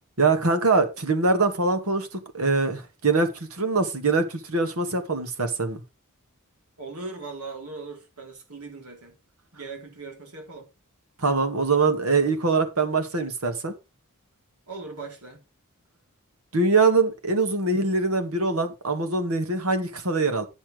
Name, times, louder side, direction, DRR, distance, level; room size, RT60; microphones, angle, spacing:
voice 1, 0.2-5.8 11.2-13.7 16.5-20.5, right 3 dB, 70° right, 2.0 m, -23 dB
voice 2, 6.8-9.2 9.5-10.7 14.7-15.4, right 3 dB, 90° right, 4.1 m, -39 dB
10.0 x 7.2 x 5.0 m
head